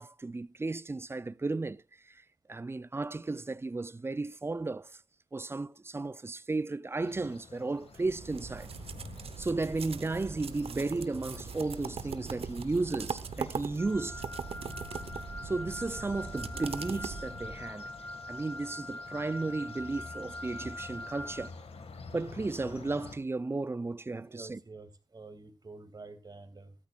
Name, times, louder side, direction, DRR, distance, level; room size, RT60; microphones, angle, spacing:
voice 1, 0.0-2.2 2.5-4.9 5.3-8.7 9.4-14.2 15.4-17.9 18.3-21.5 22.1-24.6, right 3 dB, 25° right, 0.5 m, -34 dB
sound 1, 7.0-23.2, left 4 dB, 70° left, 1.9 m, -49 dB
sound 2, 7.9-17.7, right 6 dB, 65° right, 1.0 m, -41 dB
Wind instrument woodwind instrument, 13.8-21.5, left 1 dB, 20° left, 1.2 m, -43 dB
voice 2, 24.3-26.7, right 3 dB, 40° right, 2.5 m, -48 dB
13.5 x 13.0 x 2.4 m
cardioid pair, 45°, 11 cm